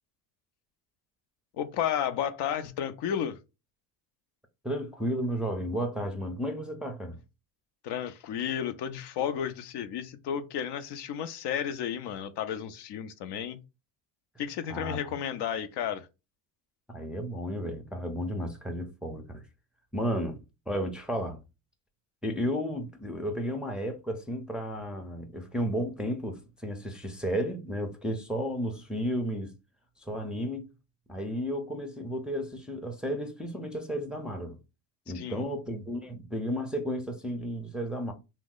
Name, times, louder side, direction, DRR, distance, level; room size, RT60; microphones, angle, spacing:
voice 1, 1.6-3.4 7.8-13.6 14.4-16.1 35.1-35.4, left 9 dB, 60° left, 0.5 m, -32 dB
voice 2, 4.6-7.2 14.7-15.0 16.9-19.4 19.9-20.4 20.7-21.4 22.2-29.5 30.0-30.7 31.1-34.6 35.1-38.1, equal, ahead, 0.5 m, -33 dB
2.8 x 2.1 x 3.8 m
supercardioid pair, 85°, 48 cm